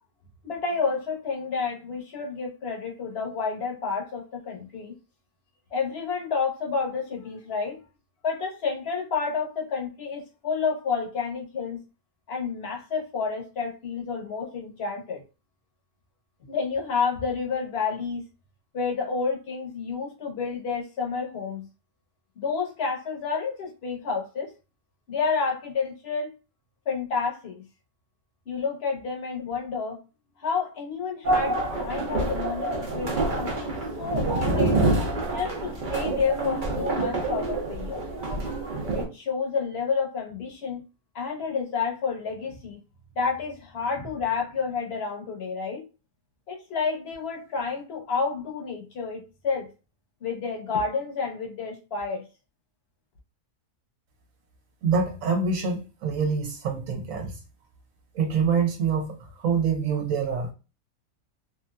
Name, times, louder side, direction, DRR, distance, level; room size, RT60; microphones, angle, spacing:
voice 1, 0.4-5.0 5.7-7.8 8.2-11.8 12.3-15.2 16.5-18.2 18.7-21.7 22.4-24.5 25.1-26.3 26.9-27.6 28.5-30.0 30.4-34.8 35.3-38.0 38.9-40.8 41.1-42.8 43.2-45.8 46.5-49.7 50.2-52.2, left 5 dB, 50° left, 1.1 m, -30 dB
sound 1, 31.2-39.1, right 2 dB, 40° right, 0.8 m, -27 dB
voice 2, 54.8-57.3 58.1-60.5, right 5 dB, 65° right, 1.3 m, -26 dB
3.3 x 2.7 x 2.2 m
omnidirectional pair, 1.5 m